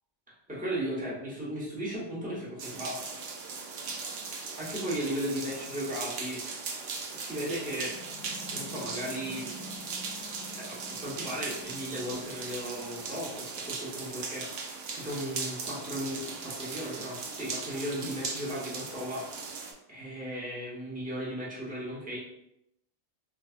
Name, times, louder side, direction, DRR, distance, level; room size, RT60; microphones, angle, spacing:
voice 1, 0.5-3.1 4.6-6.4 7.1-7.9 8.5-9.5 10.5-14.5 14.9-19.3 19.9-22.2, equal, 5° right, -7 dB, 1.1 m, -36 dB
sound 1, 2.6-19.7, right 4 dB, 65° right, 0.8 m, -39 dB
sound 2, 7.8-13.4, left 3 dB, 70° left, 0.9 m, -49 dB
3.8 x 2.7 x 2.4 m, 0.80 s
omnidirectional pair, 1.2 m